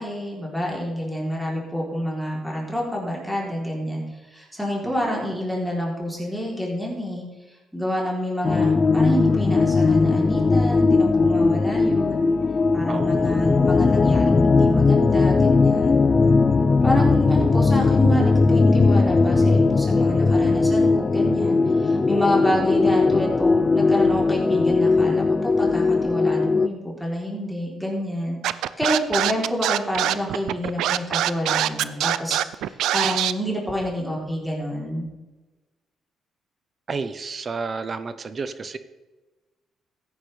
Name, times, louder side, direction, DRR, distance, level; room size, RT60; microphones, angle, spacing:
voice 1, 0.0-4.0 4.3-7.2 7.7-12.3 12.7-16.0 16.8-35.1, equal, ahead, -3 dB, 3.5 m, -28 dB
voice 2, 4.8-5.2 12.9-13.3 36.9-38.8, right 4 dB, 40° right, 12 dB, 0.8 m, -31 dB
sound 1, 8.4-26.7, left 3 dB, 30° left, 0.4 m, -19 dB
Scratching (performance technique), 28.4-33.3, right 12 dB, 85° right, 0.4 m, -23 dB
15.0 x 9.7 x 3.4 m, 1.2 s
cardioid pair, 90°, 0 cm